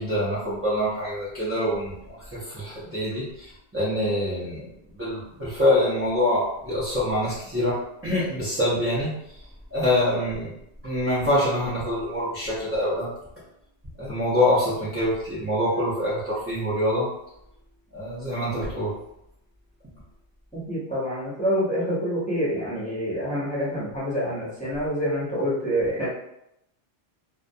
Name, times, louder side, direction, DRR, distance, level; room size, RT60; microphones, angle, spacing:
voice 1, 0.0-4.7 5.0-9.4 9.7-10.5 10.8-13.1 14.0-17.1 17.9-18.9, left 1 dB, 20° right, -10 dB, 0.4 m, -25 dB
voice 2, 20.5-26.1, equal, 10° left, -10 dB, 0.8 m, -27 dB
2.3 x 2.2 x 2.6 m, 0.80 s
omnidirectional pair, 1.2 m